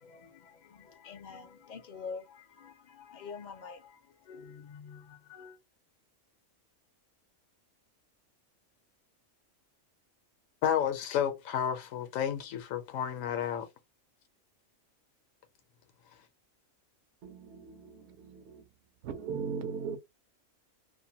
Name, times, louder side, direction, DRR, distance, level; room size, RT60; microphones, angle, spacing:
voice 1, 0.0-4.0 4.3-5.6, left 5 dB, 55° left, 0.5 m, -46 dB
voice 2, 10.6-13.7, left 9 dB, 80° left, 1.0 m, -31 dB
voice 3, 17.2-18.7 19.0-20.0, right 6 dB, 65° right, 0.8 m, -39 dB
2.6 x 2.2 x 2.8 m
omnidirectional pair, 1.4 m